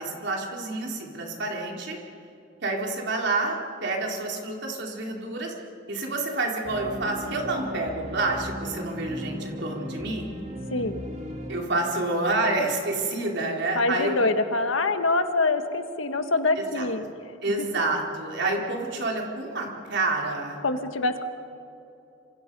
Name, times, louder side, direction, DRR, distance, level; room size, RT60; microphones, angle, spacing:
voice 1, 0.0-2.0 2.6-5.5 5.9-10.3 11.5-14.1 16.6-16.9 17.4-20.6, right 2 dB, 60° right, 0 dB, 3.9 m, -28 dB
sound 1, 6.6-11.6, equal, 35° right, 2.6 m, -37 dB
voice 2, 10.7-11.0 13.7-17.0 20.6-21.2, left 3 dB, 85° left, 8 dB, 1.6 m, -25 dB
27.5 x 26.0 x 5.5 m, 2.8 s
head